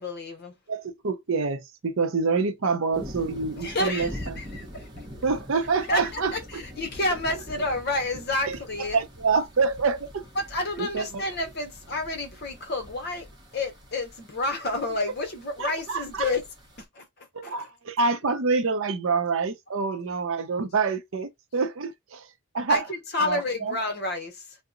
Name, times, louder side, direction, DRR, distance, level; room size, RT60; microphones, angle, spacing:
voice 1, 0.0-0.5 3.6-4.8 5.9-9.0 10.4-13.3 13.5-16.4 17.0-17.1 17.4-17.7 22.7-24.4, left 2 dB, 45° left, 0.7 m, -30 dB
voice 2, 0.7-4.3 5.2-6.6 8.5-10.2 10.8-11.2 15.6-16.3 17.3-22.3 22.5-22.9 23.2-23.8, right 4 dB, 65° right, 0.6 m, -27 dB
sound 1, 2.9-16.8, equal, 20° right, 0.7 m, -44 dB
2.8 x 2.0 x 3.7 m
head